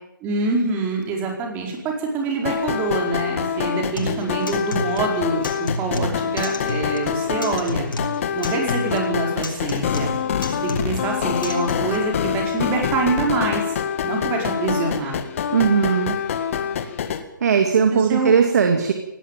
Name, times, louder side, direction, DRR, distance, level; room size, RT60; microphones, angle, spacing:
voice 1, 0.2-7.9 8.3-10.1 10.6-13.6 14.0-15.2 17.9-18.3, right 3 dB, 15° right, 1 dB, 4.8 m, -25 dB
sound 1, 2.4-17.2, left 8 dB, 40° left, 1.9 m, -26 dB
Acoustic guitar, 4.0-12.0, left 2 dB, 75° left, 5.9 m, -32 dB
voice 2, 15.5-16.2 17.4-18.9, right 6 dB, 50° right, 6 dB, 2.4 m, -18 dB
18.0 x 17.0 x 9.2 m, 0.90 s
hypercardioid pair, 155°, 11 cm